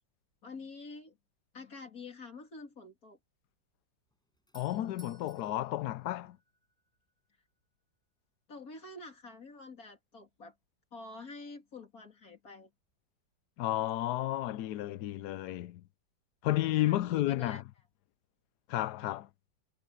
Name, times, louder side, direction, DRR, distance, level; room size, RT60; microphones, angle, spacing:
voice 1, 0.4-1.2 1.5-3.2 8.5-10.5 10.9-12.7 16.5-17.6, left 3 dB, 50° left, 3.5 m, -47 dB
Doorbell, 4.1-7.0, right 1 dB, ahead, 5.3 m, -61 dB
voice 2, 4.5-6.4 13.6-15.8 16.4-17.6 18.7-19.3, left 15 dB, 70° left, 1.1 m, -32 dB
omnidirectional pair, 2.0 m